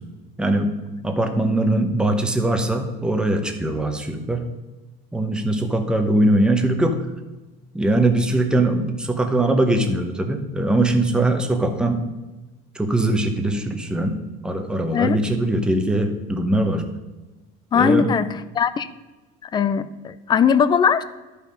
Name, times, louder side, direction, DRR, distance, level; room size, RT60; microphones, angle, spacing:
voice 1, 0.4-0.8 1.0-4.4 5.1-7.0 7.7-12.0 12.7-14.2 14.4-16.8 17.7-18.1, right 1 dB, 5° right, 5 dB, 0.8 m, -21 dB
voice 2, 17.7-18.9 19.4-21.0, left 7 dB, 20° left, 14 dB, 0.4 m, -20 dB
11.5 x 5.5 x 5.0 m, 1.1 s
cardioid pair, 150°, 20 cm